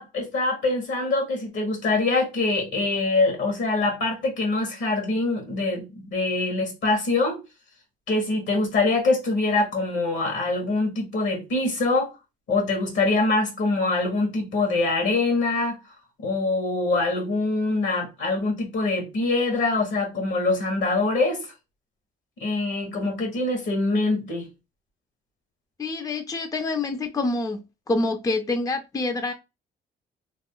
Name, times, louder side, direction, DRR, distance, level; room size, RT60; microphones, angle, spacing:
voice 1, 0.0-7.4 8.1-12.1 12.5-15.8 16.2-21.5 22.4-24.5, left 3 dB, 75° left, 1.5 m, -24 dB
voice 2, 25.8-27.6 27.9-29.3, left 2 dB, 15° left, 0.4 m, -26 dB
3.0 x 2.2 x 3.7 m
cardioid pair, 90°, 20 cm